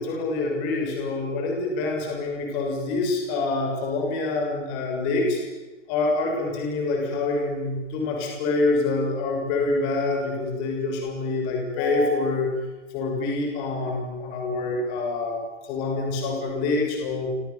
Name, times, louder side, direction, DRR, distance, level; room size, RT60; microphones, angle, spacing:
voice 1, 0.0-5.4 5.9-12.5 12.9-17.3, left 3 dB, 25° left, 1 dB, 6.8 m, -26 dB
29.0 x 26.0 x 7.2 m, 1.1 s
hypercardioid pair, 170°, 37 cm